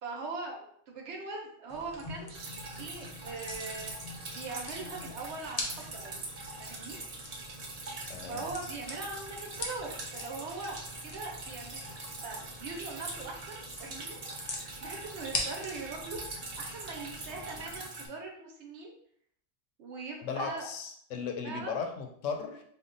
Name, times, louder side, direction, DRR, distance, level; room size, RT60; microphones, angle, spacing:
voice 1, 0.0-3.9 4.3-6.2 6.6-7.0 8.3-14.2 14.5-16.2 16.6-18.9 19.8-20.7 21.4-21.8, right 3 dB, 70° right, 0 dB, 1.0 m, -41 dB
sound 1, 1.7-17.9, left 2 dB, 45° left, 0.6 m, -43 dB
Drip, 2.3-18.1, right 2 dB, 45° right, 0.6 m, -43 dB
voice 2, 8.1-8.4 20.2-22.6, left 5 dB, 85° left, 4 dB, 1.0 m, -36 dB
3.4 x 2.2 x 3.7 m, 0.65 s
omnidirectional pair, 1.3 m